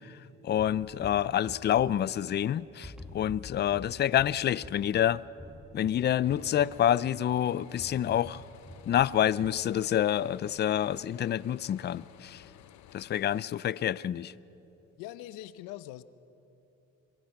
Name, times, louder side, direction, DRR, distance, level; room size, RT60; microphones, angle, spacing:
voice 1, 0.0-5.2 5.7-8.4 8.9-12.5 12.9-14.3, left 11 dB, 35° left, 0.5 m, -28 dB
sound 1, 0.6-2.5 2.8-7.3 7.8-9.7, left 1 dB, ahead, 1.8 m, -48 dB
sound 2, 6.2-13.4, left 13 dB, 60° left, 0.8 m, -54 dB
voice 2, 15.0-16.0, left 14 dB, 90° left, 0.8 m, -42 dB
26.5 x 21.0 x 5.9 m
cardioid pair, 95°, 31 cm